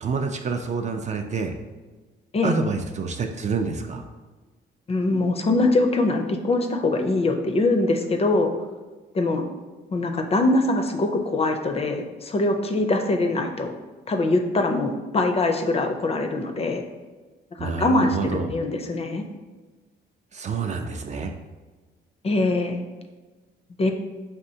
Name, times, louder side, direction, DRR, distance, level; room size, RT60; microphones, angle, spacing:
voice 1, 0.0-1.6 2.4-4.0 17.6-18.5 20.3-21.3, right 4 dB, 35° right, 5 dB, 0.4 m, -27 dB
voice 2, 4.9-8.5 9.1-9.4 9.9-13.7 14.1-16.8 17.6-18.2 18.5-19.2 22.2-22.8 23.8-23.9, left 2 dB, 30° left, 5 dB, 0.4 m, -23 dB
4.3 x 3.4 x 2.7 m, 1.3 s
cardioid pair, 90°, 20 cm